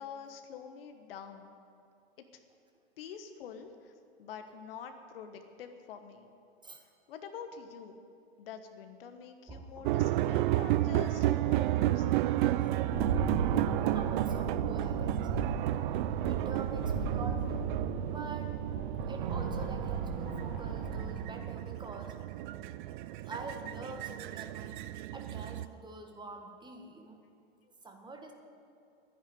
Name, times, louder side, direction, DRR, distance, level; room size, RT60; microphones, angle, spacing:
voice 1, 0.0-1.5 3.0-3.9 4.2-6.3 7.1-8.0 8.4-12.2, left 7 dB, 60° left, 7 dB, 1.3 m, -46 dB
voice 2, 9.5-10.0 13.0-15.5 16.1-17.6 18.1-18.5 19.1-22.2 23.3-24.8 25.1-27.2 27.8-28.3, right 3 dB, 15° right, 3 dB, 1.6 m, -45 dB
sound 1, 9.8-25.7, right 14 dB, 50° right, 0.5 m, -32 dB
Rattle, 12.7-21.2, right 3 dB, 85° right, 3.6 m, -36 dB
11.0 x 10.0 x 9.3 m, 2.5 s
hypercardioid pair, 100°, 32 cm